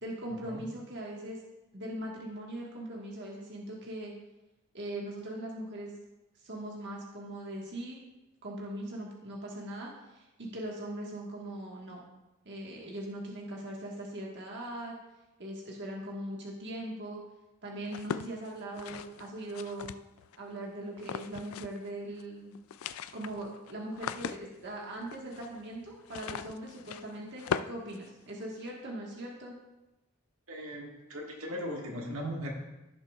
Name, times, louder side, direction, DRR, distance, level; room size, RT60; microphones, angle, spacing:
voice 1, 0.0-1.4 1.7-4.1 4.7-5.9 6.4-8.0 8.4-12.0 12.4-14.9 15.4-17.2 17.6-19.9 20.4-22.6 23.1-29.6, right 1 dB, 55° right, -2 dB, 1.5 m, -40 dB
sound 1, 17.9-20.4 21.0-21.9 22.1-22.2 22.5-28.7, left 7 dB, 75° left, 0.3 m, -40 dB
voice 2, 30.5-32.5, equal, 80° right, -1 dB, 1.7 m, -38 dB
16.0 x 6.8 x 2.4 m, 0.99 s
head